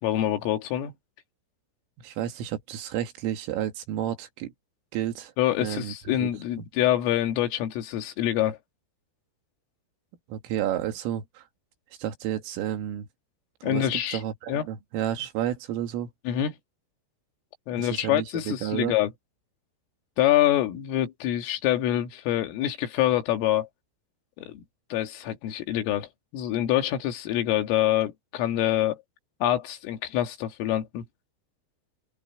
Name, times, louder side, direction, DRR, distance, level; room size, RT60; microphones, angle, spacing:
voice 1, 0.0-0.9 5.4-8.6 13.6-14.2 14.5-14.7 16.3-16.5 17.7-19.1 20.2-23.7 24.4-24.6 24.9-29.0 29.4-31.0, left 12 dB, 85° left, 4.7 m, -26 dB
voice 2, 2.0-4.5 4.9-5.3 5.6-6.3 6.6-6.7 10.3-11.4 12.0-13.1 13.6-16.1 17.8-19.0, right 11 dB, 80° right, 4.5 m, -31 dB
open air
omnidirectional pair, 5.7 m